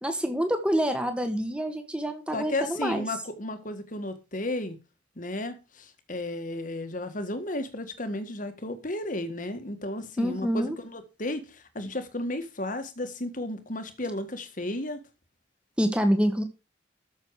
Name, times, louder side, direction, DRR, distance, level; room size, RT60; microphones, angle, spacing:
voice 1, 0.0-3.1 10.2-10.8 15.8-16.4, equal, 5° right, 1.6 m, -26 dB
voice 2, 2.3-4.8 5.2-15.0, left 1 dB, 45° left, 1.6 m, -33 dB
13.5 x 6.5 x 4.7 m
head